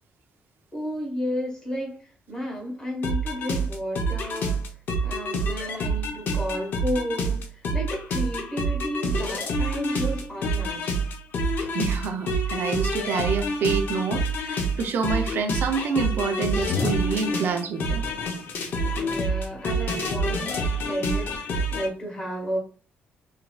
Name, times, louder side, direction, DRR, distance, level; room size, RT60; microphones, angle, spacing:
voice 1, 0.7-4.7 5.0-10.9 18.9-22.6, equal, 15° left, 1.0 m, -32 dB
sound 1, 3.0-21.9, right 1 dB, 55° left, 0.5 m, -27 dB
voice 2, 11.7-18.0, right 5 dB, 60° right, 0.5 m, -27 dB
3.0 x 2.5 x 2.2 m
cardioid pair, 165°, 4 cm